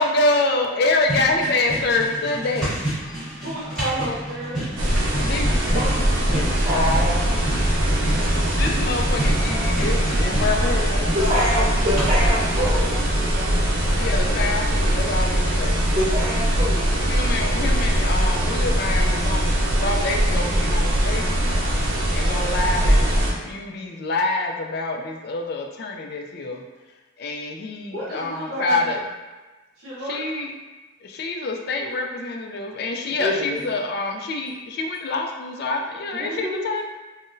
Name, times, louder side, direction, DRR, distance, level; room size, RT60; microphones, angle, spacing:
voice 1, 0.0-2.8 5.2-5.9 7.8-11.1 13.9-15.8 17.1-21.7 22.1-23.1 23.4-26.6 27.2-29.0 30.1-30.5 31.0-36.9, left 2 dB, 50° left, 2 dB, 0.3 m, -26 dB
sound 1, 1.0-12.9, right 1 dB, ahead, 1.3 m, -31 dB
voice 2, 3.4-4.6 11.2-13.7 27.9-29.0 29.8-30.3, right 1 dB, 55° right, -11 dB, 1.0 m, -32 dB
sound 2, 4.8-23.3, right 1 dB, 85° right, 0.6 m, -21 dB
voice 3, 6.3-7.2 8.2-8.6 11.1-13.1 16.0-17.0 33.2-33.6 36.1-36.6, equal, 30° right, -6 dB, 0.3 m, -26 dB
3.7 x 2.1 x 2.5 m, 1.2 s
head